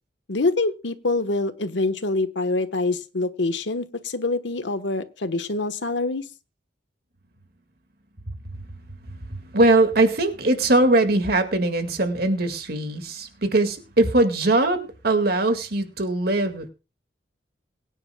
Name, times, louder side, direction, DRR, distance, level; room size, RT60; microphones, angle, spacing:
voice 1, 0.3-6.2, left 2 dB, 85° left, 10 dB, 1.3 m, -25 dB
voice 2, 9.3-16.7, right 2 dB, 60° right, 7 dB, 2.1 m, -21 dB
22.5 x 9.9 x 2.3 m, 0.31 s
head